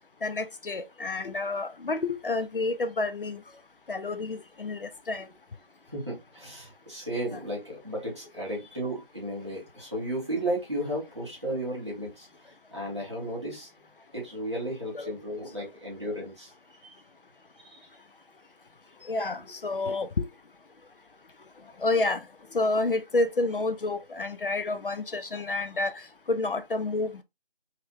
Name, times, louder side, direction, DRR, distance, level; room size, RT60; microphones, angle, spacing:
voice 1, 0.2-3.4 3.9-5.3 14.9-15.1 19.1-20.3 21.8-22.2 22.5-27.2, left 2 dB, 65° left, 0.5 m, -29 dB
voice 2, 5.9-13.7 14.1-16.5 16.8-16.9 17.6-17.8 19.0-19.1, right 1 dB, 30° right, 1.4 m, -34 dB
3.3 x 2.4 x 2.8 m
figure-of-eight pair, 180°, 29 cm